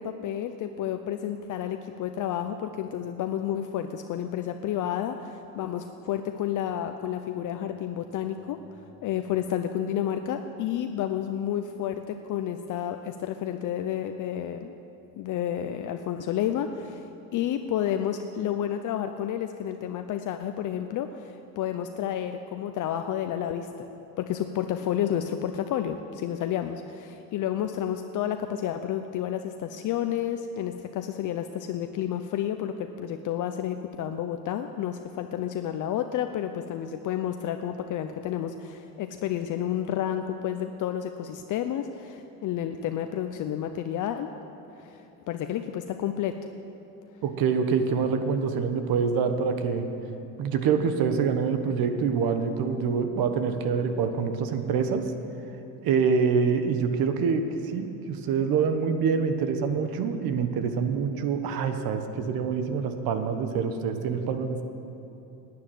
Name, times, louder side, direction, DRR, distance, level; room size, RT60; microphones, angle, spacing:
voice 1, 0.0-14.7 15.2-17.1 17.3-23.7 24.2-44.3 44.8-46.4, left 10 dB, 50° left, 7 dB, 0.6 m, -30 dB
voice 2, 47.2-49.9 50.4-55.1 55.8-64.6, right 6 dB, 60° right, 8 dB, 1.3 m, -26 dB
11.0 x 9.5 x 9.3 m, 2.9 s
cardioid pair, 120°, 40 cm